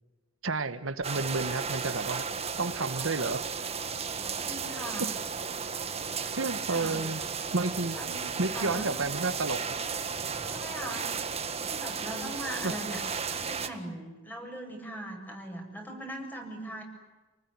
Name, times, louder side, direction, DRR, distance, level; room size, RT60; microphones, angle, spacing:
voice 1, 0.4-2.2 2.6-3.4 5.0-5.1 6.4-7.2 7.5-8.0 8.4-9.6 12.6-12.7, right 3 dB, 85° right, 10 dB, 1.4 m, -30 dB
sound 1, 1.0-13.7, right 6 dB, 30° right, 1.7 m, -34 dB
voice 2, 4.4-5.1 6.4-7.0 7.9-8.9 10.4-11.1 11.6-13.0 13.3-16.8, right 1 dB, 10° left, 2 dB, 7.1 m, -40 dB
29.0 x 20.0 x 9.8 m, 1.2 s
head